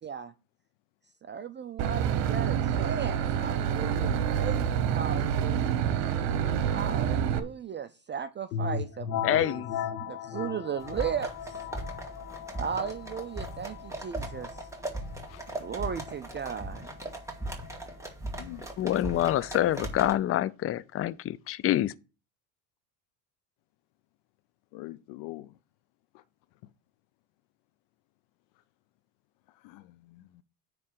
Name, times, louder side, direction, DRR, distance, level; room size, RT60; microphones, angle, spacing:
voice 1, 0.0-0.3 1.2-5.9 6.7-9.6 10.1-11.6 12.6-14.7 15.6-16.9, right 7 dB, 25° right, 0.5 m, -36 dB
Boat Water vehicle / Engine, 1.8-7.4, right 8 dB, 65° right, 1.2 m, -27 dB
sound 1, 8.5-18.1, left 7 dB, 85° left, 1.2 m, -38 dB
voice 2, 9.2-9.7 18.8-21.9, left 13 dB, 30° left, 0.5 m, -26 dB
sound 2, 10.8-20.1, right 1 dB, 5° right, 2.3 m, -39 dB
voice 3, 24.7-25.5 26.1-26.2 29.6-30.4, left 17 dB, 65° left, 0.8 m, -44 dB
9.6 x 3.3 x 6.7 m
hypercardioid pair, 80°, 47 cm